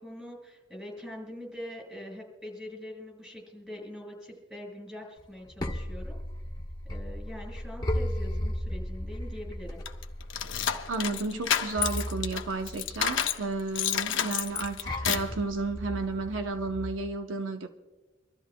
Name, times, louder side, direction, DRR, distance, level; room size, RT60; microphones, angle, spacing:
voice 1, 0.0-6.1 6.9-9.8, left 1 dB, 5° right, -1 dB, 4.9 m, -43 dB
sound 1, 5.2-17.1, equal, 20° left, 1.3 m, -36 dB
sound 2, 9.9-13.4 13.8-15.4, left 9 dB, 70° left, 0.7 m, -30 dB
voice 2, 10.9-17.7, right 3 dB, 80° right, 6 dB, 0.8 m, -32 dB
26.0 x 13.0 x 2.3 m, 1.2 s
head